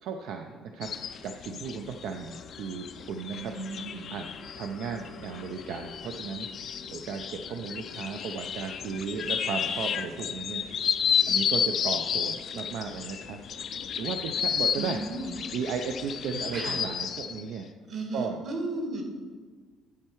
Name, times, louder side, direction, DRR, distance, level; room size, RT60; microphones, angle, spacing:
voice 1, 0.0-1.0 1.2-3.5 4.1-4.3 4.5-6.5 6.9-10.6 11.3-13.4 14.0-15.0 15.5-17.7 18.1-18.4, right 6 dB, 60° right, 5 dB, 0.4 m, -35 dB
sound 1, 0.8-17.4, left 7 dB, 40° left, 0.3 m, -32 dB
voice 2, 3.3-4.0 14.7-15.3 16.5-16.8 17.9-19.0, right 2 dB, 40° right, 3 dB, 1.3 m, -35 dB
10.5 x 4.5 x 4.5 m, 1.5 s
cardioid pair, 175°, 0 cm